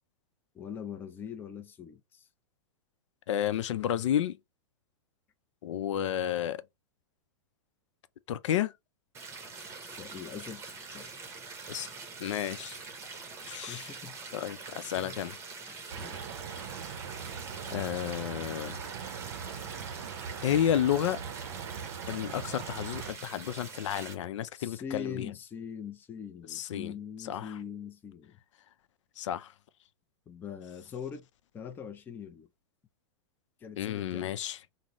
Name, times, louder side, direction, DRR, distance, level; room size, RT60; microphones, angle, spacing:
voice 1, 0.5-2.3 9.8-11.2 13.7-14.2 14.8-15.2 16.0-16.3 24.6-28.4 30.3-31.3 31.5-32.5 33.6-34.3, left 7 dB, 15° left, 0.4 m, -42 dB
voice 2, 3.3-4.4 5.6-6.6 8.3-8.7 11.7-11.9 12.2-12.8 13.4-13.9 14.3-15.4 17.7-18.8 20.4-21.2 22.1-25.3 26.5-26.9 27.2-27.5 29.2-29.5 33.8-34.6, left 10 dB, 75° left, 0.5 m, -31 dB
sound 1, 9.1-24.1, right 4 dB, 15° right, 0.7 m, -44 dB
sound 2, 15.9-23.1, right 7 dB, 70° right, 0.6 m, -41 dB
3.9 x 2.0 x 3.0 m
hypercardioid pair, 145°, 16 cm